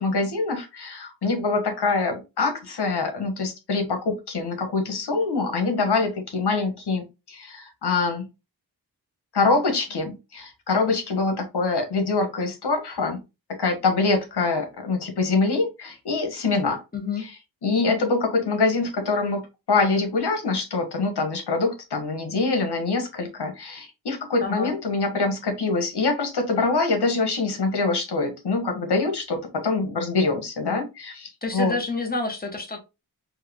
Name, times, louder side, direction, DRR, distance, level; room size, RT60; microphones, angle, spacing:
voice 1, 0.0-8.2 9.3-13.2 13.6-16.8 17.6-31.7, left 3 dB, 90° left, 5 dB, 1.4 m, -24 dB
voice 2, 16.9-17.3 24.4-24.8 31.4-32.8, left 4 dB, 25° left, 3 dB, 1.3 m, -28 dB
4.6 x 2.5 x 3.5 m, 0.26 s
wide cardioid pair, 120°, 39 cm